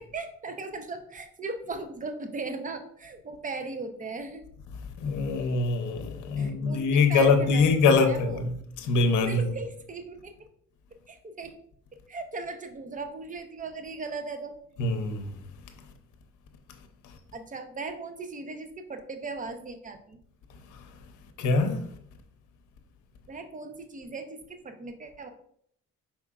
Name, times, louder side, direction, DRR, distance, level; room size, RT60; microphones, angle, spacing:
voice 1, 0.0-4.4 6.4-8.5 9.2-10.3 11.1-11.5 12.1-14.5 17.3-20.2 23.3-25.3, right 3 dB, 25° right, 0.7 m, -38 dB
voice 2, 5.0-8.5 8.8-9.5 14.8-15.4 17.0-17.1 20.7-20.9 21.4-21.9, left 4 dB, 80° left, 0.7 m, -24 dB
4.7 x 4.2 x 2.4 m
cardioid pair, 90°, 30 cm